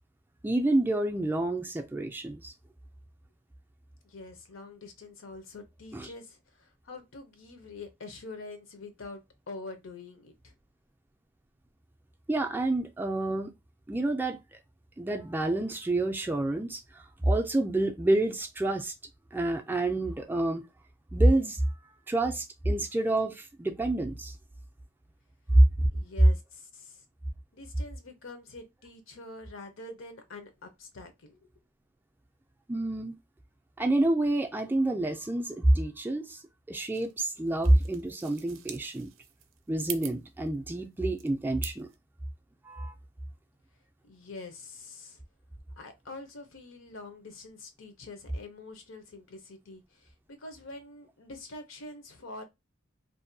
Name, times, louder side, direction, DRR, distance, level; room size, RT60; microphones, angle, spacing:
voice 1, 0.4-2.5 5.9-6.1 12.3-13.5 13.9-14.4 15.0-18.9 19.3-20.6 21.1-21.6 22.1-24.3 25.5-25.6 32.7-33.2 33.8-36.4 36.7-39.1 39.7-41.9 42.6-42.9, right 1 dB, 10° right, 0.3 m, -27 dB
voice 2, 4.0-10.5 25.9-27.0 27.5-31.5 44.0-45.2 45.8-52.4, left 3 dB, 85° left, 0.7 m, -45 dB
sound 1, 36.9-42.0, right 10 dB, 85° right, 0.4 m, -45 dB
2.6 x 2.1 x 2.6 m
head